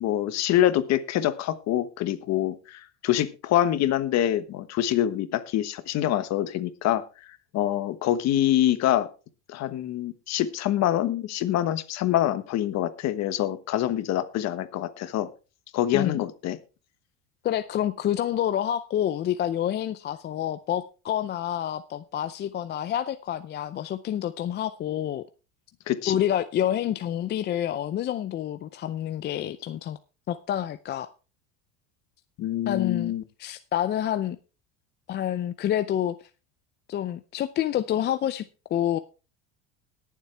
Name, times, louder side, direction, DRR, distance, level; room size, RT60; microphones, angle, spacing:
voice 1, 0.0-7.0 7.5-9.1 9.5-15.3 15.7-16.6 25.9-26.1 32.4-33.2, left 12 dB, 50° left, 12 dB, 1.3 m, -25 dB
voice 2, 17.4-25.2 26.1-30.0 30.3-31.1 32.7-33.1 33.4-34.4 35.1-36.2 36.9-38.4 38.7-39.0, left 11 dB, 30° left, 11 dB, 0.5 m, -28 dB
20.5 x 7.4 x 3.4 m, 0.33 s
cardioid pair, 130°, 35 cm